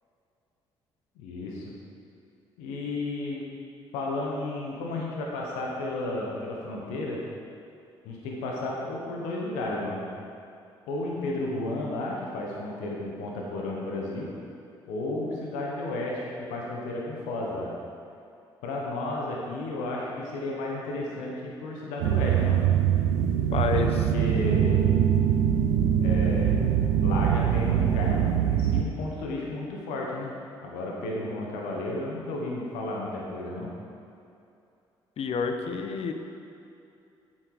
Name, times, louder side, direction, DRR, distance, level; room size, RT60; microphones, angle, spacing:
voice 1, 1.1-1.7 2.6-3.4 3.9-7.2 8.0-10.1 10.9-14.3 14.9-17.7 18.6-22.6 23.5-24.9 26.0-26.6 27.0-30.3 30.6-33.7 35.6-35.8, left 2 dB, 80° left, -2 dB, 1.3 m, -33 dB
sound 1, 22.0-28.8, right 9 dB, 80° right, 0.6 m, -23 dB
voice 2, 23.5-23.9 35.2-36.1, left 5 dB, 55° left, 6 dB, 0.9 m, -28 dB
8.9 x 7.5 x 4.9 m, 2.6 s
hypercardioid pair, 50°, 12 cm